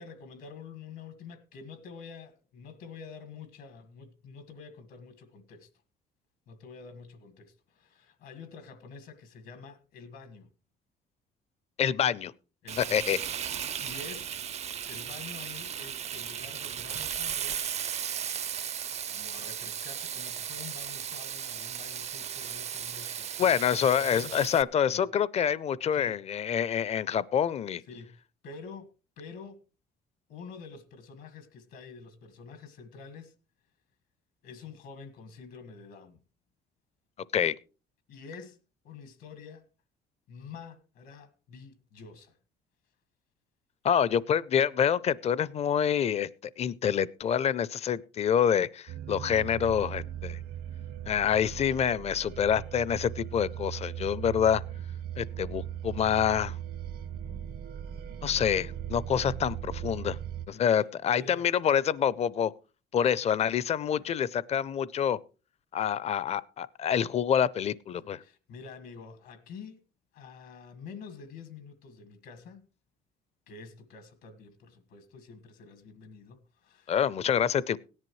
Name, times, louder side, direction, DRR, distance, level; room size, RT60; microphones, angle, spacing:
voice 1, 0.0-5.7 6.5-10.5 12.6-13.1 13.8-14.3 14.9-17.7 19.1-23.5 24.0-24.3 24.9-25.0 25.9-26.2 27.9-28.9 29.2-29.6 30.3-33.3 34.4-36.2 38.1-38.6 38.8-39.7 40.3-42.4 57.1-57.4 60.5-60.8 61.1-61.5 63.9-64.1 68.0-69.8 70.1-72.6 73.5-77.0, left 5 dB, 80° left, 1.7 m, -47 dB
voice 2, 11.8-12.3 12.8-13.2 23.4-27.8 37.3-37.6 43.8-46.3 46.6-50.4 51.1-54.6 55.2-56.5 58.2-60.2 60.5-62.5 62.9-65.2 65.7-68.2 76.9-77.8, left 8 dB, 40° left, 0.5 m, -27 dB
Frying (food), 12.7-24.6, right 9 dB, 40° right, 0.5 m, -36 dB
sound 1, 48.9-60.5, right 10 dB, 65° right, 0.8 m, -38 dB
17.0 x 10.5 x 3.1 m
cardioid pair, 110°, 17 cm